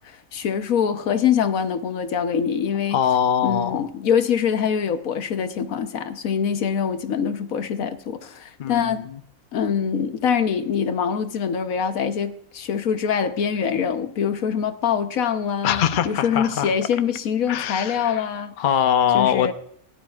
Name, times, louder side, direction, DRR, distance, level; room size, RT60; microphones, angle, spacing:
voice 1, 0.0-3.0 3.4-9.1 9.5-18.5 19.1-19.5, left 7 dB, 80° left, 1.4 m, -24 dB
voice 2, 2.9-3.9 8.6-9.2 15.6-16.7 17.5-18.2 18.6-19.5, left 9 dB, 45° left, 0.8 m, -22 dB
17.0 x 11.5 x 2.4 m
omnidirectional pair, 1.4 m